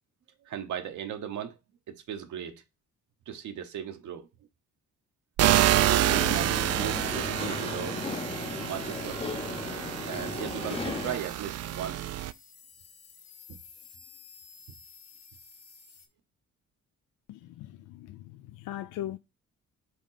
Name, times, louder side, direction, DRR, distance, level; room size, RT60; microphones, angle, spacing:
voice 1, 0.4-1.6 1.9-2.6 3.3-4.3 5.5-8.0 8.4-9.2 10.1-12.1 13.5-13.6, right 9 dB, 75° right, 1.0 m, -37 dB
sound 1, 5.4-12.3, right 13 dB, 55° right, 0.4 m, -28 dB
sound 2, 6.0-11.2, left 4 dB, 20° left, 0.6 m, -36 dB
sound 3, 8.0-16.1, left 6 dB, 60° left, 1.7 m, -53 dB
voice 2, 17.3-19.2, left 13 dB, 85° left, 0.5 m, -40 dB
5.3 x 3.7 x 5.5 m
cardioid pair, 90°, 30 cm